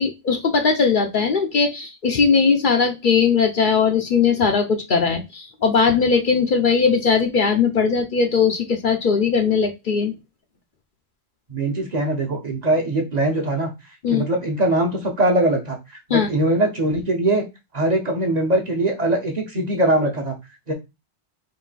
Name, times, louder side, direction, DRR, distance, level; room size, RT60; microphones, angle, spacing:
voice 1, 0.0-10.1 14.0-14.2 16.1-16.3, left 5 dB, 55° left, 4 dB, 0.7 m, -19 dB
voice 2, 11.5-13.7 14.1-15.8 16.1-17.4 17.7-20.3 20.7-20.8, right 1 dB, 40° right, 2 dB, 1.0 m, -21 dB
3.8 x 2.6 x 4.0 m, 0.23 s
omnidirectional pair, 1.1 m